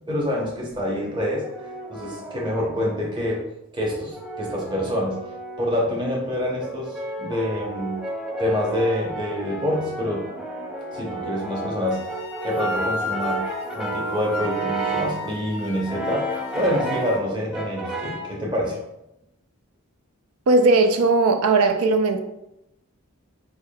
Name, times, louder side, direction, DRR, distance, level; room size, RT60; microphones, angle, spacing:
voice 1, 0.1-1.5 1.9-3.4 3.7-5.2 5.6-8.0 8.4-10.4 10.9-12.0 12.4-13.5 13.7-18.8, left 1 dB, 20° right, -2 dB, 0.8 m, -26 dB
Brass instrument, 1.2-3.1 3.9-5.9 6.6-15.3 15.9-17.2 17.5-18.4, right 2 dB, 5° right, 0.4 m, -32 dB
sound 1, 11.9-17.2, left 3 dB, 65° left, 0.5 m, -33 dB
voice 2, 20.5-22.2, right 3 dB, 90° right, 7 dB, 0.5 m, -18 dB
4.4 x 3.5 x 2.3 m, 0.87 s
head